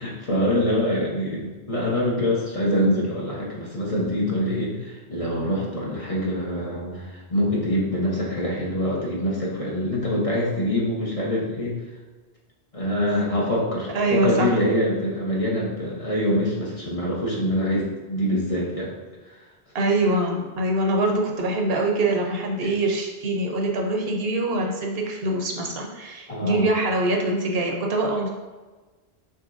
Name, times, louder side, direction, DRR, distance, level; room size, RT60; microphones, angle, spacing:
voice 1, 0.0-11.8 12.7-18.9 19.2-19.5 22.6-22.7 26.3-26.7, equal, 35° left, -4 dB, 0.8 m, -25 dB
voice 2, 13.9-14.5 19.7-28.3, right 2 dB, 70° right, 1 dB, 0.9 m, -24 dB
6.5 x 2.9 x 2.5 m, 1.3 s
omnidirectional pair, 1.1 m